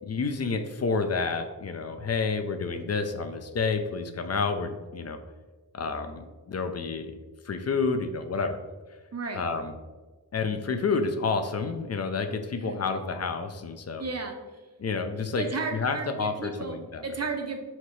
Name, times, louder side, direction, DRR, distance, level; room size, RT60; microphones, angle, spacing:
voice 1, 0.0-5.2 5.7-7.1 7.4-8.6 9.3-9.7 10.3-14.0 14.8-15.4 15.7-17.1, left 4 dB, 40° left, 8 dB, 0.4 m, -29 dB
voice 2, 9.1-9.4 12.5-12.7 14.0-14.4 15.3-16.7 17.0-17.6, right 4 dB, 40° right, 3 dB, 0.7 m, -33 dB
4.3 x 2.7 x 3.1 m, 1.3 s
wide cardioid pair, 60°, 39 cm